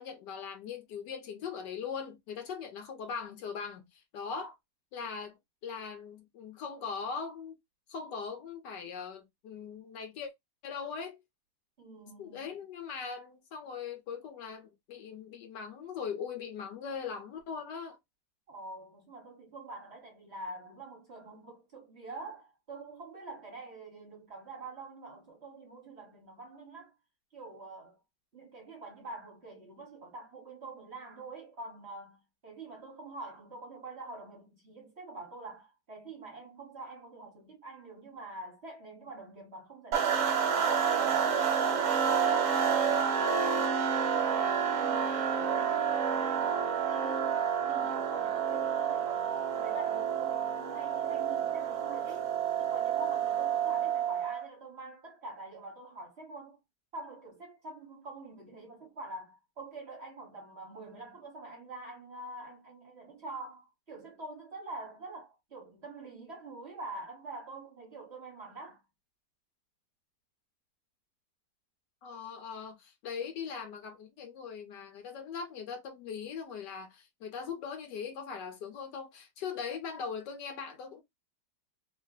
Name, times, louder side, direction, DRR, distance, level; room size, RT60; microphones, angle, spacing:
voice 1, 0.0-4.6 4.9-5.4 5.6-7.6 7.9-10.3 10.6-11.2 12.2-18.0 72.0-81.0, left 6 dB, 75° left, 1.4 m, -40 dB
voice 2, 11.8-12.5 18.5-26.9 27.3-28.0 28.3-47.3 47.7-52.3 52.6-56.6 56.9-68.8, right 2 dB, 40° right, 1.3 m, -46 dB
sound 1, 39.9-54.5, right 7 dB, 60° right, 0.9 m, -29 dB
3.2 x 2.1 x 3.5 m
omnidirectional pair, 2.0 m